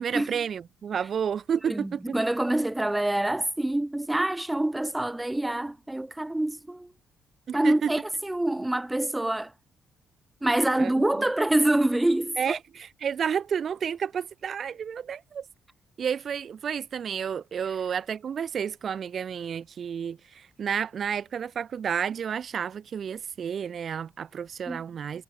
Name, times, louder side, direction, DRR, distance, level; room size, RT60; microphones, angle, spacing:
voice 1, 0.0-2.1 7.5-7.9 10.8-10.9 12.4-15.5 16.0-25.2, right 7 dB, 55° right, 0.4 m, -31 dB
voice 2, 1.7-6.9 7.5-9.5 10.4-12.6 24.7-24.8, right 1 dB, 10° right, 0.7 m, -26 dB
cardioid pair, 90°, 0 cm